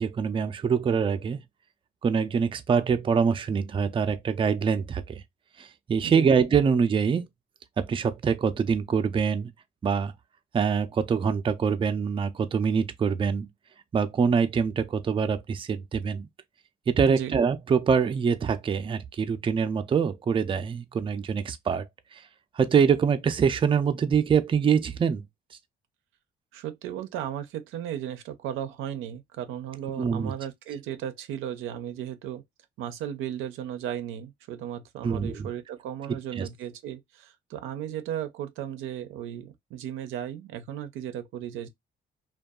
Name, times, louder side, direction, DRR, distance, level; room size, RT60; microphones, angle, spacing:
voice 1, 0.0-1.4 2.0-5.2 5.9-7.2 7.8-9.5 9.8-10.1 10.5-13.5 13.9-16.3 16.9-21.8 22.6-25.2 30.0-30.3 35.0-35.5 36.4-36.5, right 6 dB, 25° right, 0.4 m, -24 dB
voice 2, 26.5-32.4 32.8-41.7, right 10 dB, 90° right, 0.4 m, -35 dB
2.6 x 2.2 x 2.2 m
cardioid pair, 90°, 20 cm